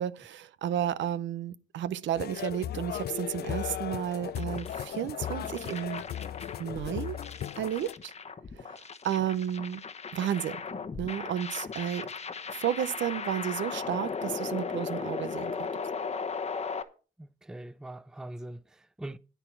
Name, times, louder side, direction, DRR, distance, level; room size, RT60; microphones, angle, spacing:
voice 1, 0.0-6.0 6.6-7.2 7.6-8.1 8.6-9.8 10.1-12.1 12.5-15.7, right 10 dB, 70° right, 0.7 m, -32 dB
sound 1, 2.1-7.9, left 11 dB, 55° left, 0.4 m, -37 dB
sound 2, 4.4-16.8, left 5 dB, 35° left, 1.0 m, -37 dB
voice 2, 17.2-19.2, right 1 dB, 5° right, 0.4 m, -42 dB
10.0 x 9.2 x 4.6 m
cardioid pair, 90°, 20 cm